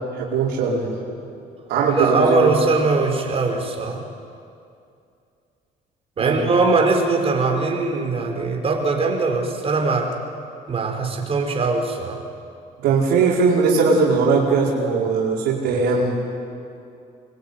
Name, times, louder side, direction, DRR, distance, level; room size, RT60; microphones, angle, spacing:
voice 1, 0.2-0.9 1.7-2.5 6.2-6.4 12.8-16.1, right 4 dB, 85° right, -4 dB, 5.0 m, -19 dB
voice 2, 1.8-4.0 6.2-10.2 10.7-12.2, right 3 dB, 35° right, 1 dB, 5.0 m, -21 dB
24.5 x 23.0 x 9.6 m, 2.5 s
cardioid pair, 110°, 17 cm